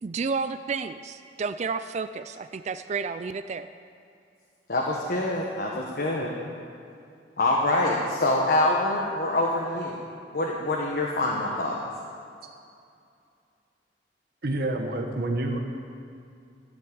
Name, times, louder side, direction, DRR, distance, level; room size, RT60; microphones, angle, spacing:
voice 1, 0.0-3.7, right 5 dB, 40° right, 11 dB, 0.4 m, -31 dB
voice 2, 4.7-6.3 7.4-9.9 10.3-11.8, left 2 dB, 55° left, -2 dB, 1.4 m, -25 dB
voice 3, 14.4-15.6, right 2 dB, 60° right, 2 dB, 1.1 m, -28 dB
13.5 x 7.7 x 8.6 m, 2.5 s
head